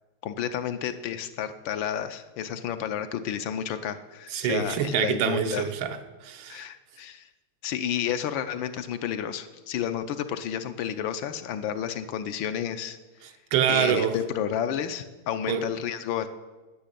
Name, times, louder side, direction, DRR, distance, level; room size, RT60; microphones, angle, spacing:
voice 1, 0.2-5.6 6.5-7.3 7.6-13.0 13.7-16.3, left 9 dB, 75° left, 1.3 m, -31 dB
voice 2, 4.3-6.6 13.2-14.2 15.5-15.7, right 8 dB, 80° right, 1.6 m, -26 dB
10.5 x 6.5 x 8.4 m
omnidirectional pair, 2.3 m